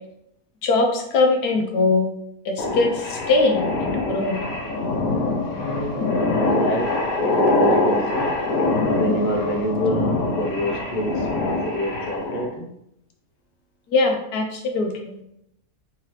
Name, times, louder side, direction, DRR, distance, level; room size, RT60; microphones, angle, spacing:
voice 1, 0.6-2.1 2.4-4.4 13.9-15.2, left 3 dB, 90° left, 3 dB, 1.3 m, -21 dB
sound 1, 2.6-12.5, left 2 dB, 70° left, 1.1 m, -23 dB
voice 2, 5.5-6.0 6.4-8.3 8.9-12.7, equal, 45° left, 0 dB, 0.5 m, -27 dB
3.9 x 2.8 x 3.0 m, 0.78 s
omnidirectional pair, 1.6 m